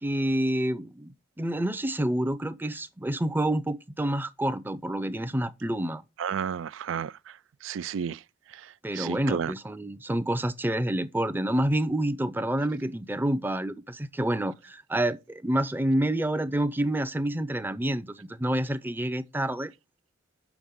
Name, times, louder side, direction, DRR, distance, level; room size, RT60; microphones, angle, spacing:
voice 1, 0.0-6.0 8.8-19.7, right 1 dB, 10° right, 0.5 m, -28 dB
voice 2, 6.2-7.1 7.6-8.2 9.0-9.5, right 7 dB, 85° right, 0.4 m, -31 dB
7.1 x 6.1 x 3.6 m
head